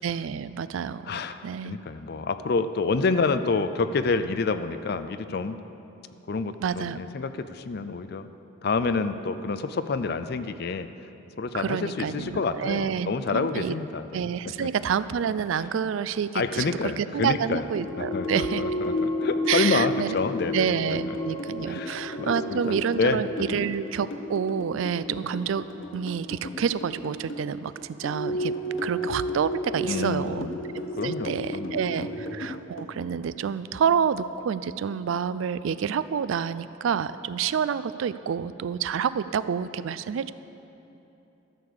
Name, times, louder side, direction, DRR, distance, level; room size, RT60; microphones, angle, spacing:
voice 1, 0.0-1.8 6.6-7.0 11.5-13.7 14.1-18.6 19.5-20.1 20.5-25.7 25.9-28.5 28.8-30.5 31.0-40.3, right 7 dB, 75° right, 15 dB, 0.3 m, -28 dB
voice 2, 1.1-5.6 6.3-8.3 8.6-10.9 11.4-14.2 14.6-14.7 16.3-17.6 18.0-20.7 21.7-23.2 23.5-23.6 29.8-30.6 31.0-32.1, left 4 dB, 50° left, 11 dB, 0.4 m, -28 dB
sound 1, 17.5-32.9, left 1 dB, 75° left, 1.0 m, -40 dB
sound 2, 17.7-26.9 27.9-32.4, equal, 10° left, 2.8 m, -33 dB
13.0 x 6.8 x 6.4 m, 2.9 s
head